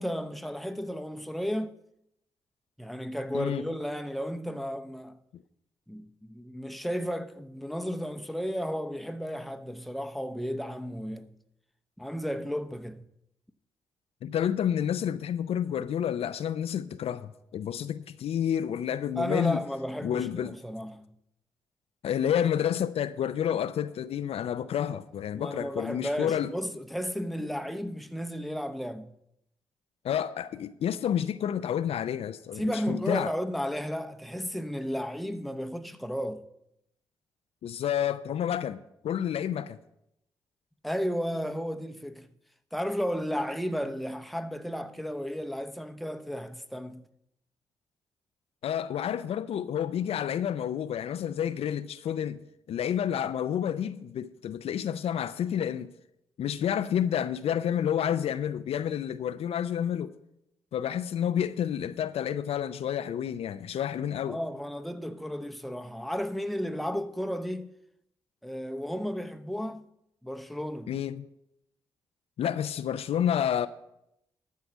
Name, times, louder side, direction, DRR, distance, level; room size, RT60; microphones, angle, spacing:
voice 1, 0.0-1.7 2.8-5.2 5.9-11.3 12.0-13.0 19.2-21.1 25.3-29.1 32.6-36.4 40.8-42.3 42.7-47.0 64.2-67.7 68.4-69.8 70.2-70.9, equal, ahead, 0.8 m, -33 dB
voice 2, 14.2-19.6 20.0-20.6 22.0-26.5 30.0-33.3 37.6-39.8 48.6-55.9 56.4-60.1 60.7-64.4 70.9-71.3 72.4-73.7, left 9 dB, 70° left, 0.5 m, -29 dB
13.0 x 4.7 x 7.2 m
supercardioid pair, 45°, 11 cm